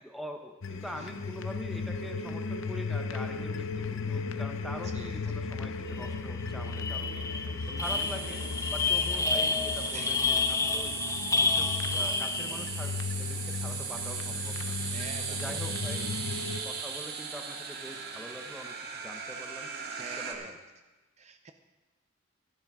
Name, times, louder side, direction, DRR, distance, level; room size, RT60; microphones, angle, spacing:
voice 1, 0.0-7.2 7.7-11.0 11.4-14.8 15.3-16.1 16.6-20.6, equal, ahead, 4 dB, 0.9 m, -44 dB
sound 1, 0.6-16.6, left 4 dB, 75° left, 0.7 m, -36 dB
voice 2, 4.9-5.4 7.7-8.1 9.9-10.2 14.8-15.6 16.0-16.1 19.9-20.5 21.2-21.5, right 4 dB, 35° right, 6 dB, 0.6 m, -46 dB
sound 2, 6.0-6.2 6.5-12.9, left 4 dB, 15° left, 0.5 m, -30 dB
sound 3, 7.8-20.3, right 6 dB, 50° right, 1.5 m, -38 dB
13.5 x 11.0 x 4.9 m, 1.2 s
head